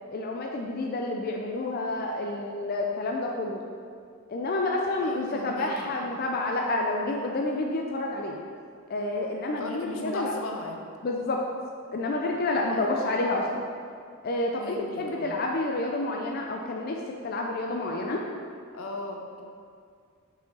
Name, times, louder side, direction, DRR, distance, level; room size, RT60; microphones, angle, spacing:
voice 1, 0.1-3.6 4.3-8.4 8.9-10.3 11.0-11.4 11.9-13.6 14.2-18.2, left 2 dB, 45° left, 0 dB, 0.4 m, -29 dB
voice 2, 5.0-6.0 9.6-10.9 12.7-13.2 14.6-15.4 18.7-19.4, left 2 dB, 80° left, 2 dB, 0.7 m, -38 dB
5.3 x 4.8 x 4.0 m, 2.2 s
head